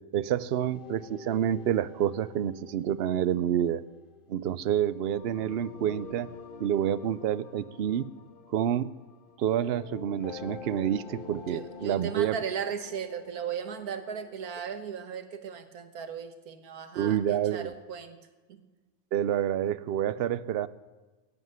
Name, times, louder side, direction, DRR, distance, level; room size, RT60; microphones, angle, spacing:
voice 1, 0.1-3.8 4.3-6.3 6.6-8.0 8.5-8.9 9.4-12.4 17.0-17.7 19.1-20.7, right 10 dB, 60° right, 16 dB, 0.7 m, -28 dB
sound 1, 0.5-14.6, left 5 dB, 45° left, 0.9 m, -47 dB
voice 2, 11.5-18.2 18.5-18.6, right 7 dB, 85° right, 9 dB, 1.7 m, -37 dB
16.5 x 8.2 x 9.5 m, 1.2 s
omnidirectional pair, 1.6 m